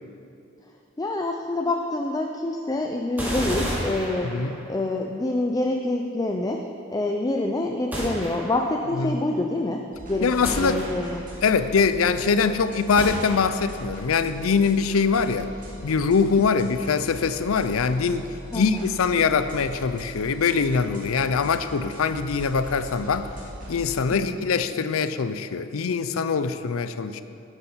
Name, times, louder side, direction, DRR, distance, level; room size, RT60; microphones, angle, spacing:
voice 1, 1.0-4.4 4.7-10.3 10.6-11.3 18.5-18.8 24.1-24.4, left 2 dB, 20° left, 2 dB, 0.5 m, -27 dB
Automatic Assault Rifle, 3.2-4.8 7.9-8.8 10.4-11.4 13.0-13.8, equal, 10° right, 2.5 m, -31 dB
voice 2, 4.2-4.6 9.0-9.2 10.2-10.8 11.4-15.5 15.8-18.3 18.5-23.3 23.7-27.2, left 5 dB, 80° left, 12 dB, 0.5 m, -23 dB
sound 1, 9.9-24.2, equal, 40° right, 2.3 m, -41 dB
9.6 x 8.1 x 5.7 m, 2.7 s
head